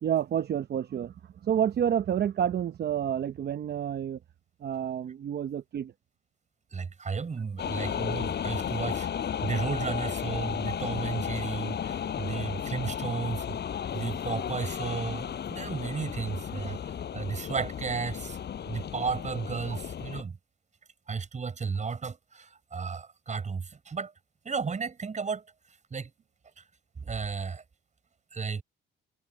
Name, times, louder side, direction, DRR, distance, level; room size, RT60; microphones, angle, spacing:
voice 1, 0.0-1.1 1.4-4.2 4.6-5.9, right 9 dB, 55° right, 0.9 m, -29 dB
voice 2, 6.7-9.1 9.4-13.4 13.9-16.8 17.1-18.4 18.7-20.4 21.1-24.1 24.4-25.4 25.9-26.1 26.6-26.7 27.0-27.6 28.3-28.6, right 5 dB, 35° right, 6.0 m, -33 dB
sound 1, 7.6-20.2, left 8 dB, 60° left, 5.5 m, -34 dB
cardioid pair, 90°, 20 cm